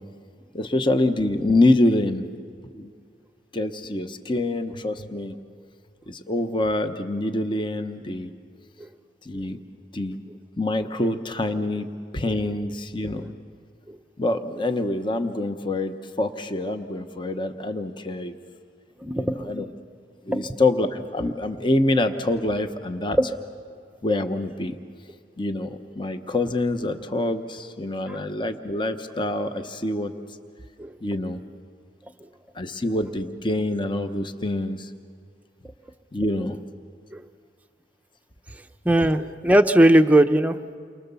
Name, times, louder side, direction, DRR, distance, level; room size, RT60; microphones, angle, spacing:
voice 1, 0.5-2.3 2.7-2.9 3.5-5.4 6.1-8.3 9.2-9.6 9.9-10.2 10.6-11.9 12.1-13.3 14.2-18.4 19.1-19.7 20.2-23.2 24.0-24.8 25.4-30.1 31.0-31.4 32.5-34.9 36.1-36.6, left 2 dB, 25° left, 8 dB, 0.9 m, -25 dB
voice 2, 19.0-19.5 20.3-20.6 23.2-23.3 28.0-28.2 30.8-30.9 37.1-37.2 38.5-40.7, right 1 dB, 10° right, 7 dB, 0.7 m, -20 dB
29.5 x 23.5 x 6.9 m, 2.2 s
head